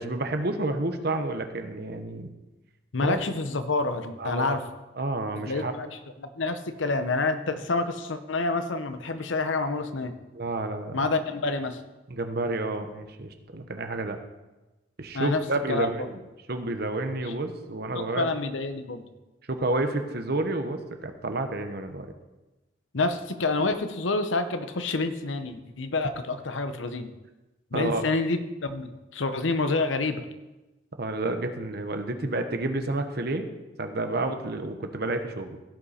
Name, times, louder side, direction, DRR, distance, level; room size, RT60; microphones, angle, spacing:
voice 1, 0.0-2.3 3.0-3.2 4.2-4.6 4.9-5.7 10.3-11.0 12.1-14.2 15.0-16.2 16.5-18.3 19.5-22.1 27.7-28.0 31.0-33.5 33.8-35.6, right 2 dB, 55° right, 7 dB, 1.0 m, -30 dB
voice 2, 2.9-4.6 5.5-5.9 6.2-10.2 10.9-11.8 15.1-15.4 15.7-15.9 17.9-19.0 22.9-27.1 27.7-30.2, left 3 dB, 75° left, 9 dB, 0.9 m, -28 dB
16.5 x 5.6 x 4.3 m, 1.1 s
head